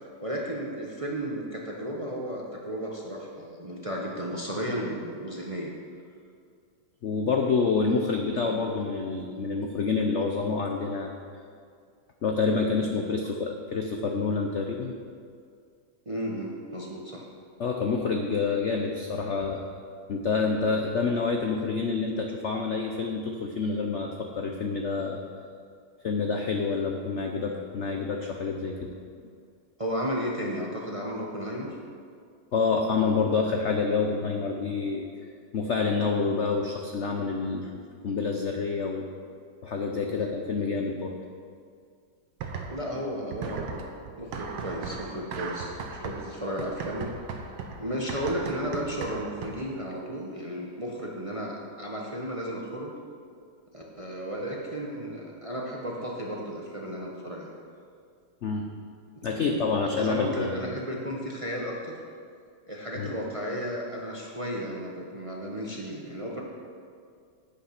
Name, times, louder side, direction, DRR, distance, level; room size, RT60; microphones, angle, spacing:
voice 1, 0.2-5.7 16.1-17.2 29.8-31.7 40.1-40.3 42.7-43.8 44.2-47.1 47.8-52.9 53.7-57.5 59.3-59.7 60.0-62.0 62.7-66.4, equal, 25° right, -2 dB, 0.8 m, -34 dB
voice 2, 7.0-11.2 12.2-14.9 17.6-19.6 20.1-25.2 26.0-28.7 32.5-35.1 35.5-39.1 39.6-41.1 58.4-58.6 59.2-60.6 62.9-63.1, left 4 dB, 65° left, 2 dB, 0.7 m, -27 dB
sound 1, 42.4-43.0 43.3-49.8, right 5 dB, 80° right, 1.7 m, -37 dB
9.2 x 8.3 x 5.9 m, 2.2 s
omnidirectional pair, 2.1 m